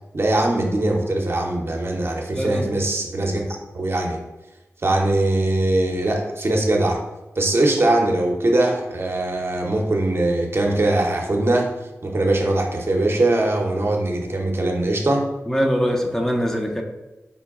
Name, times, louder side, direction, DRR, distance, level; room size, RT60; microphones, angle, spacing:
voice 1, 0.1-3.5 3.7-4.2 4.8-7.0 7.4-11.7 12.0-15.3, right 2 dB, 50° right, 1 dB, 0.7 m, -21 dB
voice 2, 2.3-2.7 15.5-16.8, equal, 10° left, 1 dB, 0.6 m, -22 dB
5.3 x 2.2 x 3.5 m, 1.0 s
cardioid pair, 45°, 5 cm